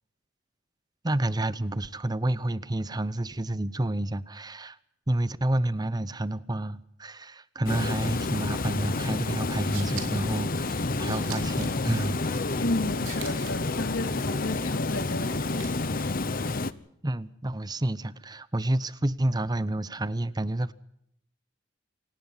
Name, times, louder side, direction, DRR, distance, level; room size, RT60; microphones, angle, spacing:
voice 1, 1.0-4.8 5.1-12.2 17.0-20.7, right 1 dB, 20° right, 0.8 m, -29 dB
Water, 7.7-16.7, left 3 dB, 45° left, 1.0 m, -29 dB
sound 1, 9.6-16.0, right 10 dB, 75° right, 3.5 m, -46 dB
voice 2, 12.6-16.5, left 2 dB, 90° left, 3.0 m, -34 dB
27.5 x 18.5 x 5.7 m
head